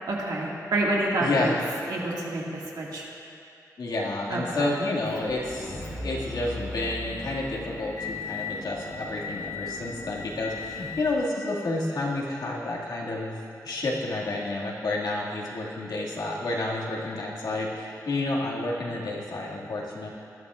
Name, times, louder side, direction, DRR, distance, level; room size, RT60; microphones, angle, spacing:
voice 1, 0.1-1.6 1.9-3.0 4.3-4.7, right 1 dB, 85° right, -4 dB, 2.1 m, -28 dB
voice 2, 1.2-1.5 3.8-13.4 13.6-20.1, left 2 dB, 85° left, -5 dB, 2.2 m, -30 dB
Motor vehicle (road) / Engine, 5.1-11.2, left 3 dB, 70° left, 3.3 m, -37 dB
20.0 x 12.0 x 2.5 m, 2.5 s
wide cardioid pair, 115°, 7 cm